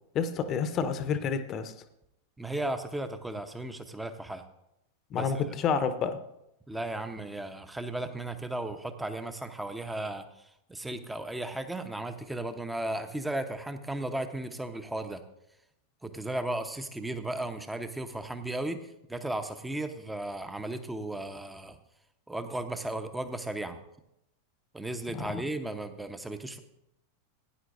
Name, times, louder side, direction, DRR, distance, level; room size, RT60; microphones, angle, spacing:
voice 1, 0.1-1.7 5.1-6.2 25.1-25.4, left 6 dB, 30° left, 10 dB, 0.9 m, -29 dB
voice 2, 2.4-4.4 5.1-5.4 6.7-15.2 16.0-21.8 22.3-23.8 24.7-26.6, right 1 dB, 5° right, 9 dB, 0.9 m, -35 dB
17.0 x 9.9 x 2.6 m, 0.83 s
figure-of-eight pair, 90°, 0 cm